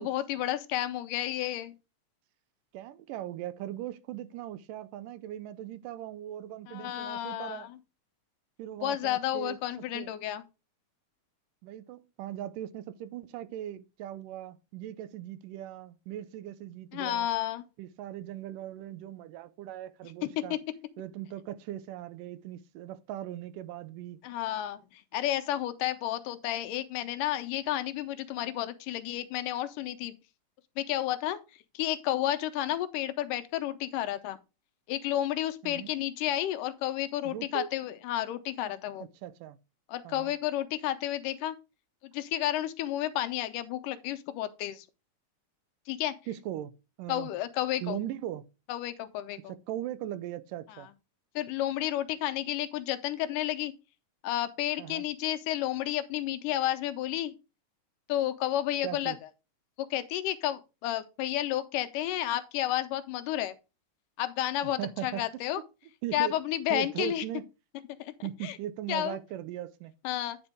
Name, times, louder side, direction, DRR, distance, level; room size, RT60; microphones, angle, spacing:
voice 1, 0.0-1.7 6.7-7.7 8.8-10.4 16.9-17.6 20.4-20.6 24.2-30.1 30.8-31.4 31.7-34.4 34.9-39.0 39.9-41.6 42.1-44.9 45.9-46.1 47.1-48.0 48.7-49.4 51.4-53.7 54.2-57.3 58.1-59.1 59.8-63.5 64.2-65.6 66.1-67.2 68.0-68.1 68.4-68.6 68.9-69.2 70.0-70.4, left 13 dB, 85° left, 2.3 m, -31 dB
voice 2, 2.7-7.7 8.6-9.6 9.9-10.1 11.6-17.3 17.8-20.6 21.0-24.2 35.6-35.9 37.2-37.7 39.0-39.6 40.0-40.3 46.3-46.7 47.0-47.3 47.8-48.4 49.5-50.9 54.8-55.1 58.8-59.2 64.6-65.2 65.6-65.7 66.0-66.4 66.7-67.4 68.2-69.9, right 12 dB, 85° right, 2.3 m, -39 dB
9.7 x 4.4 x 4.9 m
omnidirectional pair, 3.8 m